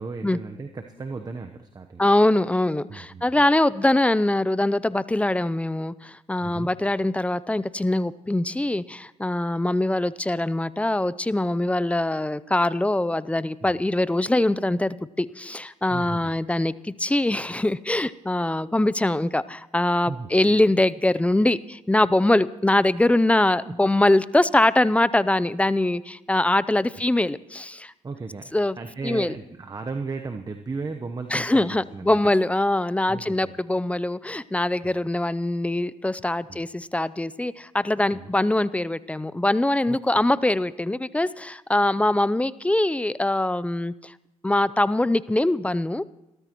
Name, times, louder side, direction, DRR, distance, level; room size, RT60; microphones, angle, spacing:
voice 1, 0.0-2.1 2.9-3.4 6.4-6.7 13.6-13.8 15.9-16.3 20.1-20.3 23.6-23.7 28.0-32.3 33.1-33.6 34.8-34.9 36.5-36.6 38.1-38.3 39.9-40.2, right 4 dB, 30° right, 6 dB, 1.0 m, -36 dB
voice 2, 2.0-27.9 28.5-28.8 29.0-29.3 31.3-44.1 44.4-46.0, left 1 dB, 10° left, 18 dB, 0.6 m, -23 dB
30.0 x 13.5 x 3.1 m, 0.95 s
supercardioid pair, 70°, 14 cm